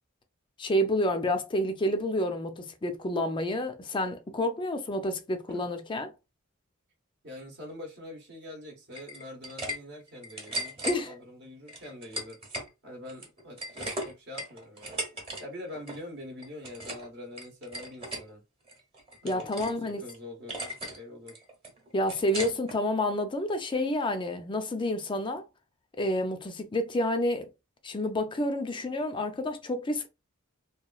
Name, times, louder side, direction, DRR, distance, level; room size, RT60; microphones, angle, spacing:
voice 1, 0.6-6.1 10.9-11.1 19.2-20.0 21.9-25.4 25.9-27.5 27.8-30.1, left 1 dB, 25° left, 0.4 m, -29 dB
voice 2, 7.2-12.4 12.8-15.0 15.4-18.4 19.2-21.4, left 1 dB, 55° right, 0.8 m, -44 dB
sound 1, 8.9-9.8 10.1-11.0 11.7-12.7 13.1-15.4 15.7-16.0 16.4-17.1 17.4-18.2 18.7-19.8 20.1-20.2 20.5-21.0 21.3-22.8, right 1 dB, 25° right, 0.9 m, -37 dB
3.0 x 2.2 x 2.3 m
head